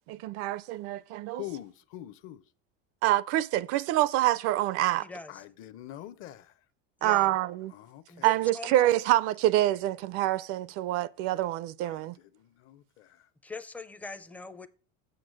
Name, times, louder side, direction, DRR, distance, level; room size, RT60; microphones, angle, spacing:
voice 1, 0.1-1.4 3.0-5.1 7.0-7.7 8.2-12.1, right 15 dB, 50° right, 0.4 m, -26 dB
voice 2, 1.3-2.4 5.3-6.4 7.8-8.0 11.8-12.0 12.4-13.1, left 13 dB, 45° left, 0.6 m, -43 dB
voice 3, 5.0-5.4 7.0-7.4 8.1-8.9 13.4-14.7, left 3 dB, 5° left, 0.4 m, -42 dB
7.9 x 6.8 x 6.3 m
cardioid pair, 160°, 30 cm